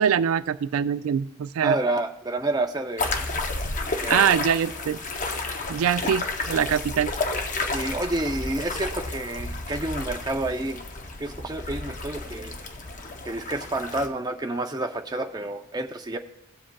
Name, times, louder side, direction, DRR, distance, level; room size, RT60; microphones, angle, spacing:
voice 1, 0.0-1.8 4.1-5.0 5.7-7.1, right 8 dB, 85° right, 15 dB, 0.3 m, -23 dB
voice 2, 1.6-3.2 4.0-4.4 6.0-6.1 7.7-10.8 11.2-12.6 13.2-16.2, right 2 dB, 20° right, 4 dB, 0.5 m, -29 dB
sound 1, 3.0-14.1, left 3 dB, 35° left, 0.7 m, -31 dB
17.0 x 7.5 x 2.3 m, 0.91 s
head